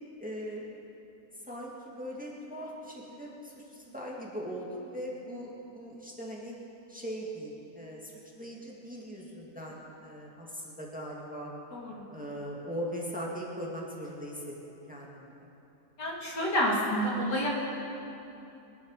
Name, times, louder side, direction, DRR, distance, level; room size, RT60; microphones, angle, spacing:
voice 1, 0.2-0.7 1.5-6.6 6.9-11.5 12.1-15.5, equal, 5° right, -3 dB, 2.1 m, -40 dB
voice 2, 11.7-12.0 16.0-17.5, equal, 90° left, -4 dB, 3.4 m, -29 dB
23.0 x 11.5 x 4.9 m, 2.9 s
omnidirectional pair, 1.8 m